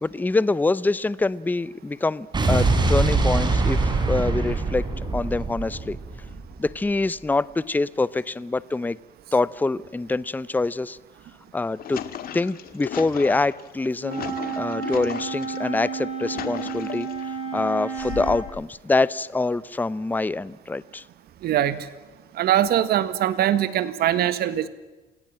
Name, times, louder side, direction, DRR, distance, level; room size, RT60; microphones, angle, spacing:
voice 1, 0.0-4.9 5.1-6.0 6.6-9.0 9.3-11.0 11.5-12.0 12.3-17.1 17.5-21.0, left 3 dB, 10° left, 18 dB, 0.7 m, -25 dB
Explosion, 2.3-6.7, right 3 dB, 25° right, 5.4 m, -23 dB
sound 1, 11.5-15.6 16.0-17.3 17.9-18.6, left 10 dB, 60° left, 2.2 m, -36 dB
Wind instrument woodwind instrument, 14.0-18.5, right 6 dB, 90° right, 6.4 m, -31 dB
voice 2, 21.4-21.9 22.3-24.7, right 11 dB, 70° right, 13 dB, 1.7 m, -22 dB
28.0 x 18.0 x 7.5 m, 1.1 s
cardioid pair, 110°, 17 cm